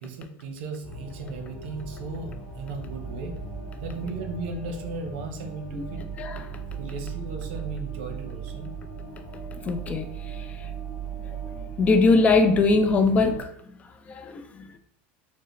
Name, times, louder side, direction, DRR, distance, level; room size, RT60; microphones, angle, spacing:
voice 1, 0.0-3.4 3.8-6.1 6.8-8.8, right 3 dB, 70° right, 0.7 m, -36 dB
sound 1, 0.8-13.4, right 5 dB, ahead, 1.2 m, -37 dB
voice 2, 9.6-10.7 11.6-13.5 14.1-14.8, left 3 dB, 20° left, 0.4 m, -22 dB
4.5 x 2.0 x 3.1 m
supercardioid pair, 135°, 6 cm